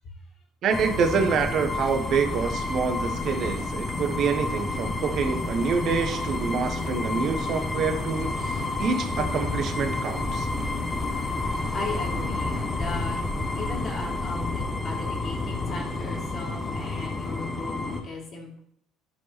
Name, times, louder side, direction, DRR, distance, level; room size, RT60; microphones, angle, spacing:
voice 1, 0.6-10.5, right 5 dB, 50° right, 6 dB, 1.0 m, -27 dB
sound 1, 0.7-18.0, left 2 dB, 20° left, 1.1 m, -30 dB
voice 2, 10.8-11.5 11.7-18.6, left 2 dB, 45° left, -1 dB, 2.6 m, -38 dB
11.5 x 4.7 x 2.8 m, 0.65 s
figure-of-eight pair, 60°, 0 cm